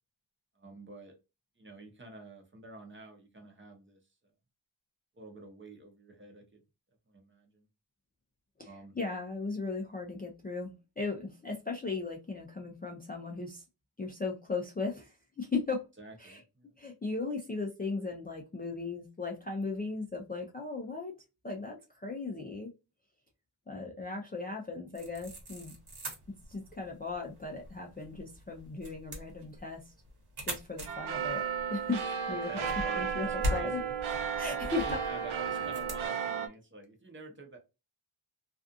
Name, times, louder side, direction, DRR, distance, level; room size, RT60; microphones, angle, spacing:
voice 1, 0.6-1.2 1.6-4.0 5.1-6.6 7.1-7.6 8.6-9.0 16.0-16.7 32.5-33.9 34.6-37.6, right 2 dB, 25° right, 2 dB, 0.7 m, -48 dB
voice 2, 9.0-13.6 14.0-15.8 16.2-16.4 16.8-21.1 21.4-22.7 23.7-25.8 26.5-29.8 30.4-32.0 32.3-33.8 34.4-35.0, left 3 dB, 20° left, -1 dB, 0.4 m, -37 dB
sound 1, 24.9-36.1, equal, 50° right, 1.1 m, -42 dB
sound 2, 30.9-36.5, right 7 dB, 90° right, 0.6 m, -34 dB
2.5 x 2.3 x 2.5 m, 0.27 s
wide cardioid pair, 125°, 48 cm